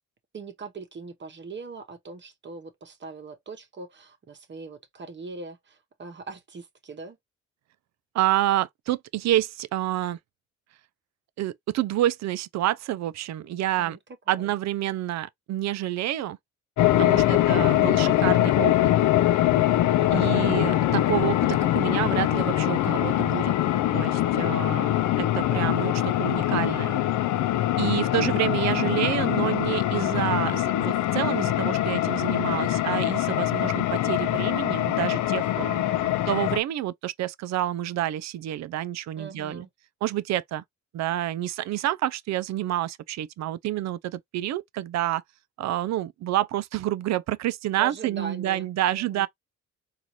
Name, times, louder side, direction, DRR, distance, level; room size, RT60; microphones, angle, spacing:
voice 1, 0.3-7.2 13.8-14.0 14.3-14.5 17.1-17.7 19.9-20.4 24.3-24.6 35.5-36.3 39.2-39.7 47.8-49.3, right 4 dB, 40° right, 0.9 m, -41 dB
voice 2, 8.1-10.2 11.4-14.0 14.3-16.4 17.0-18.9 20.1-23.5 23.9-27.0 27.8-35.5 36.3-39.7 40.0-40.6 40.9-45.2 45.6-49.3, right 13 dB, 65° right, 0.4 m, -28 dB
sound 1, 16.8-36.6, left 13 dB, 75° left, 0.5 m, -23 dB
3.9 x 2.5 x 2.9 m
cardioid pair, 90°, 30 cm